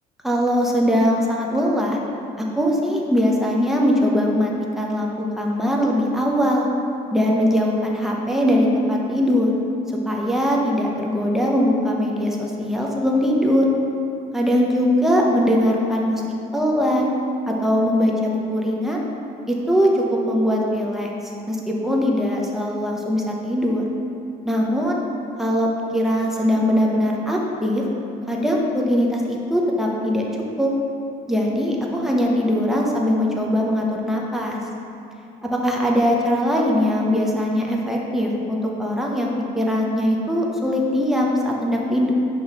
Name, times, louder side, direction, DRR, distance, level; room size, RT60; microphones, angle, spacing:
voice 1, 0.2-2.0 2.4-6.7 7.1-9.5 10.1-13.7 14.3-16.2 16.5-17.1 17.5-19.0 19.5-21.1 21.5-23.8 24.4-25.0 25.4-27.8 28.3-30.3 30.6-30.7 31.3-34.6 35.4-42.1, equal, ahead, -2 dB, 0.8 m, -21 dB
5.7 x 3.1 x 5.4 m, 2.8 s
cardioid pair, 110°, 17 cm